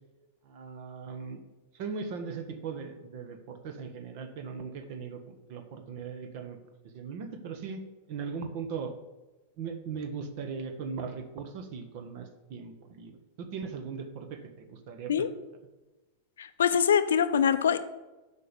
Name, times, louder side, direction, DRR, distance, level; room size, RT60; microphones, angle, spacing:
voice 1, 0.4-1.4 1.7-6.6 6.9-7.8 8.1-8.9 9.6-15.3, right 5 dB, 45° right, 7 dB, 1.3 m, -39 dB
voice 2, 16.4-17.8, left 8 dB, 65° left, 12 dB, 0.6 m, -24 dB
8.3 x 5.6 x 6.9 m, 1.1 s
figure-of-eight pair, 90°, 0 cm